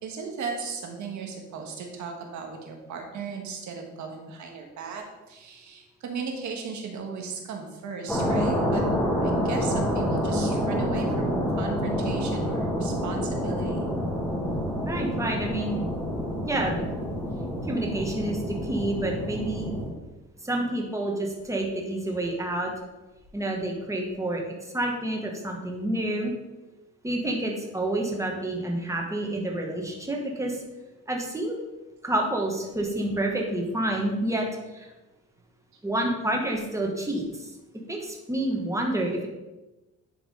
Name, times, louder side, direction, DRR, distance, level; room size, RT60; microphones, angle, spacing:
voice 1, 0.0-8.8 9.2-13.9, right 5 dB, 70° right, 2 dB, 1.4 m, -36 dB
sound 1, 8.1-19.9, equal, 5° left, 1.8 m, -28 dB
voice 2, 14.8-15.8 16.5-16.8 17.7-19.7 20.4-22.7 23.3-26.3 27.0-30.6 31.1-31.6 32.0-34.5 34.7-34.9 35.8-37.5 37.9-39.3, right 1 dB, 10° right, 0 dB, 1.4 m, -28 dB
10.5 x 3.6 x 3.7 m, 1.1 s
cardioid pair, 90°, 30 cm